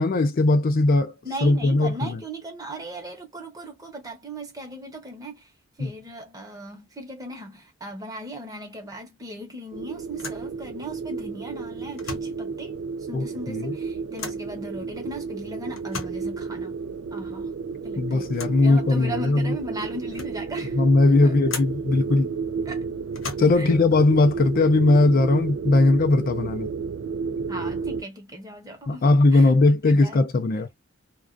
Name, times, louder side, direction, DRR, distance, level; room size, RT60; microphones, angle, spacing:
voice 1, 0.0-1.1 1.4-2.2 5.8-5.9 13.1-13.8 18.0-19.5 20.7-22.3 23.4-26.7 28.9-30.7, left 2 dB, 45° left, 0.4 m, -19 dB
voice 2, 1.2-5.5 5.8-12.7 13.1-16.7 17.1-17.5 17.8-18.3 18.6-20.8 21.2-21.3 22.7-22.9 23.6-23.7 27.5-30.3, right 1 dB, 20° right, 0.8 m, -37 dB
sound 1, 8.9-9.1 9.4-9.5 10.1-10.5 11.9-12.4 14.2-14.5 15.7-16.3 18.3-18.7 19.4-19.5 19.9-20.5 21.5-21.9 23.1-23.7, left 4 dB, 80° left, 0.8 m, -37 dB
sound 2, 9.7-28.0, right 5 dB, 65° right, 0.4 m, -32 dB
2.4 x 2.2 x 2.4 m
head